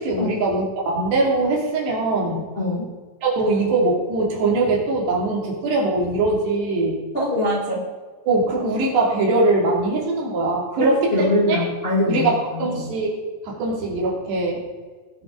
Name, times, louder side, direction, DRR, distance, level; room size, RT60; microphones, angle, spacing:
voice 1, 0.0-2.5 3.2-7.0 8.3-11.6 12.1-13.1 13.4-14.6, right 2 dB, 75° right, -2 dB, 4.9 m, -21 dB
voice 2, 2.5-2.9 7.1-7.8 10.8-12.6, left 1 dB, 20° left, -3 dB, 1.5 m, -23 dB
20.5 x 8.0 x 3.9 m, 1.4 s
omnidirectional pair, 4.9 m